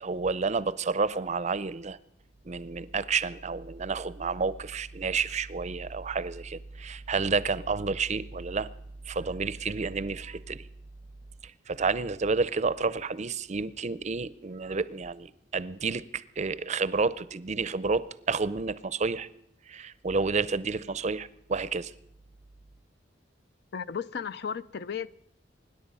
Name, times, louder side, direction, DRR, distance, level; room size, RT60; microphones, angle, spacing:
voice 1, 0.0-2.0 2.4-8.7 9.1-10.7 11.4-19.3 19.7-21.9, right 4 dB, 40° right, 0.5 m, -30 dB
voice 2, 23.7-25.1, left 7 dB, 60° left, 0.5 m, -34 dB
24.5 x 10.5 x 5.5 m
head